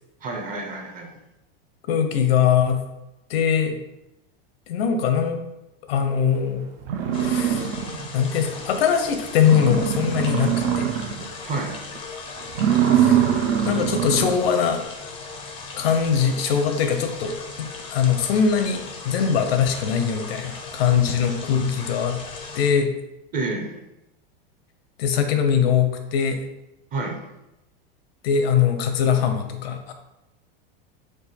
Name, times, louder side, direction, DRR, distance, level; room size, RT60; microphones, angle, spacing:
voice 1, 0.2-1.2 11.4-11.7 23.3-23.7 26.9-27.2, right 3 dB, 25° right, 2 dB, 0.7 m, -29 dB
voice 2, 1.9-2.8 3.3-3.8 4.7-5.4 5.9-6.7 7.2-7.7 8.1-10.9 12.9-13.3 13.6-14.8 15.8-22.2 22.5-22.9 25.0-26.4 28.2-29.9, left 7 dB, 85° left, 6 dB, 0.8 m, -22 dB
sound 1, 6.4-6.5 6.8-8.2 8.6-8.7 9.1-9.2 9.4-11.3 11.7-12.0 12.5-14.5, right 9 dB, 70° right, 0.7 m, -22 dB
sound 2, 7.1-22.7, left 4 dB, 20° left, 0.5 m, -38 dB
4.7 x 2.5 x 4.2 m, 0.92 s
supercardioid pair, 145°, 30 cm